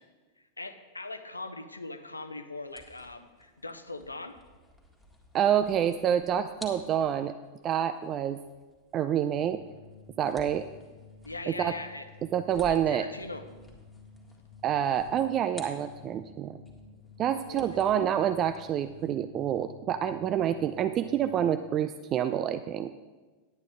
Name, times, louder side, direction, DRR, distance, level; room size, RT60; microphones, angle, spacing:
voice 1, 0.6-4.4 10.8-10.9 11.2-12.1 12.7-13.4 17.3-17.7, left 2 dB, 80° left, 9 dB, 0.7 m, -41 dB
sound 1, 2.6-16.4 16.7-19.1, left 1 dB, ahead, 1.9 m, -53 dB
voice 2, 5.3-7.3 7.6-8.4 8.9-9.6 10.2-10.7 11.5-11.7 12.3-13.1 14.6-16.6 17.2-22.9, right 9 dB, 30° right, 11 dB, 0.3 m, -27 dB
sound 2, 9.3-21.5, left 4 dB, 65° left, 1.1 m, -53 dB
10.5 x 9.2 x 3.7 m, 1.3 s
figure-of-eight pair, 90°, 0 cm